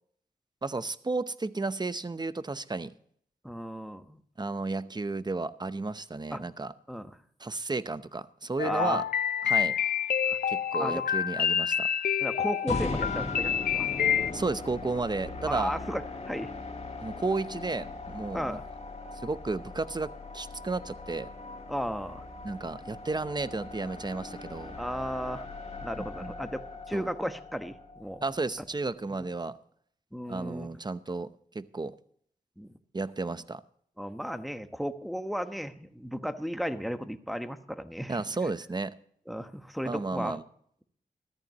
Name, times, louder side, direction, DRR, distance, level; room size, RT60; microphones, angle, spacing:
voice 1, 0.6-2.9 4.4-6.7 7.4-9.0 9.4-9.8 10.5-11.9 14.3-15.8 17.0-18.6 19.2-21.3 22.4-24.8 26.0-26.3 26.9-27.1 28.2-29.6 30.3-31.3 31.5-31.9 32.9-33.6 38.1-38.9 39.8-40.4, right 3 dB, 25° right, 14 dB, 0.7 m, -33 dB
voice 2, 3.4-4.2 6.3-6.4 6.9-7.2 8.6-9.0 10.2-10.4 10.8-11.1 12.2-13.9 15.4-16.5 18.3-18.6 21.7-22.2 24.8-25.5 25.8-28.2 29.2-29.3 30.1-30.7 32.6-32.8 34.0-38.2 39.3-40.4, equal, ahead, 9 dB, 1.1 m, -35 dB
sound 1, 8.6-14.3, left 8 dB, 70° left, 0.5 m, -28 dB
sound 2, 12.7-28.8, left 3 dB, 40° left, 2.2 m, -40 dB
14.0 x 14.0 x 3.0 m, 0.64 s
cardioid pair, 60°, 16 cm